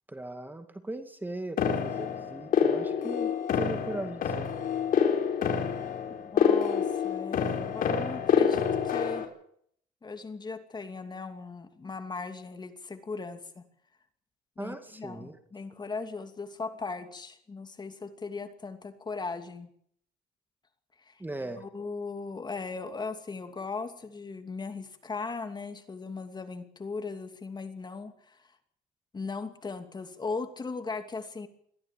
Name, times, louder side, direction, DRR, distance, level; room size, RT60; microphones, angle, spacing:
voice 1, 0.1-4.5 14.6-15.4 21.2-21.6, right 2 dB, 10° right, 8 dB, 2.3 m, -39 dB
sound 1, 1.6-9.3, left 7 dB, 55° left, 4.5 m, -27 dB
voice 2, 6.3-9.3 10.0-13.6 14.6-19.7 21.1-21.2 21.6-28.4 29.1-31.5, left 4 dB, 25° left, 7 dB, 2.7 m, -38 dB
22.5 x 15.0 x 8.6 m, 0.66 s
cardioid pair, 110°, 17 cm